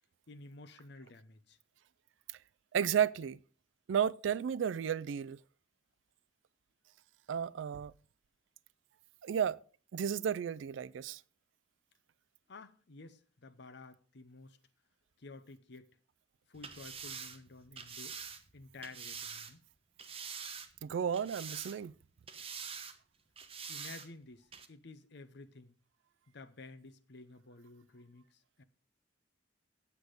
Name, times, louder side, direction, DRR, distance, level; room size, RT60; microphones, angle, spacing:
voice 1, 0.3-1.6 12.5-14.6 15.2-15.9 16.5-18.2 18.5-19.6 23.7-25.8 26.3-28.6, left 3 dB, 65° left, 0.8 m, -52 dB
voice 2, 2.7-3.4 3.9-5.4 7.3-7.9 9.2-9.6 9.9-11.2 20.8-21.9, right 8 dB, 85° right, 0.4 m, -33 dB
sound 1, 16.5-19.5 20.0-20.8 21.1-22.0 22.3-23.0 23.4-24.1 24.5-24.7, right 6 dB, 30° right, 1.0 m, -45 dB
8.3 x 8.1 x 5.1 m
head